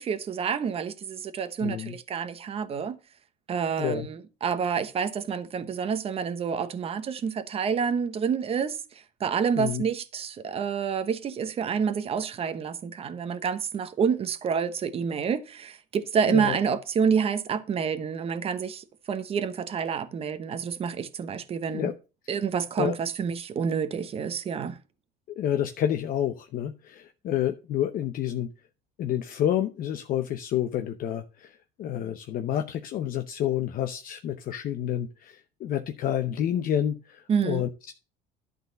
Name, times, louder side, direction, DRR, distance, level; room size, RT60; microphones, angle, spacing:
voice 1, 0.0-3.0 3.5-21.9 22.3-24.8 37.3-37.7, right 6 dB, 30° right, 0.9 m, -28 dB
voice 2, 1.6-2.0 3.8-4.1 9.6-9.8 16.3-16.6 21.7-21.9 22.8-22.9 25.4-28.5 29.0-37.9, left 10 dB, 45° left, 0.8 m, -29 dB
11.5 x 4.1 x 6.7 m
cardioid pair, 140°, 20 cm